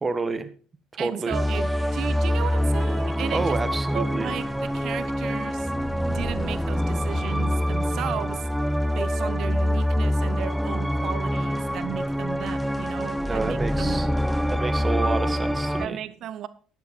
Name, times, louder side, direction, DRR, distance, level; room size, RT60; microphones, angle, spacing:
voice 1, 0.0-0.5 1.0-1.4 3.3-4.4 13.2-14.1 14.5-16.0, right 3 dB, 30° right, 1.6 m, -29 dB
voice 2, 1.0-3.6 3.9-5.7 6.1-8.5 8.9-14.0 15.8-16.5, right 11 dB, 60° right, 0.8 m, -35 dB
Earth vs space battle, 1.3-14.6, left 2 dB, 20° left, 3.0 m, -48 dB
sound 1, 1.3-15.9, equal, 5° right, 0.7 m, -25 dB
11.5 x 9.9 x 4.4 m
hypercardioid pair, 55°, 0 cm